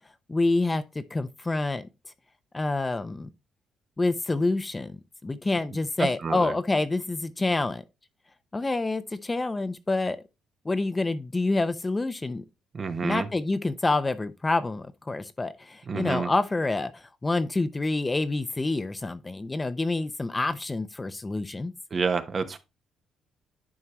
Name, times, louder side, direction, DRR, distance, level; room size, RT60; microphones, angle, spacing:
voice 1, 0.3-1.9 2.5-3.3 4.0-7.8 8.5-10.2 10.6-12.4 13.0-21.7, left 2 dB, 20° left, 0.6 m, -27 dB
voice 2, 6.0-6.6 12.7-13.3 15.9-16.3 21.9-22.6, right 5 dB, 45° right, 0.9 m, -29 dB
11.0 x 4.5 x 3.0 m
cardioid pair, 90°, 0 cm